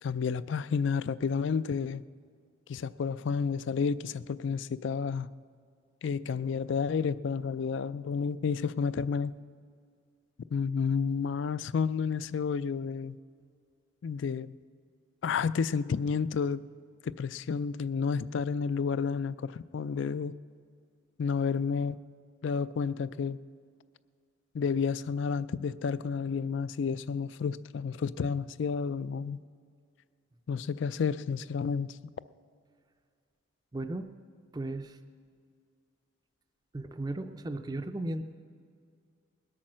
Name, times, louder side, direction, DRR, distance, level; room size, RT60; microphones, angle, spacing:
voice 1, 0.0-2.0 2.7-5.3 6.0-9.3 10.5-13.2 14.0-14.6 15.2-16.6 17.0-20.4 21.2-22.0 22.4-23.4 24.5-29.4 30.5-32.0, left 6 dB, 60° left, 17 dB, 0.3 m, -31 dB
voice 2, 33.7-34.1 34.5-35.0 36.7-38.2, right 2 dB, 20° right, 8 dB, 0.5 m, -35 dB
20.5 x 8.6 x 6.2 m, 2.2 s
head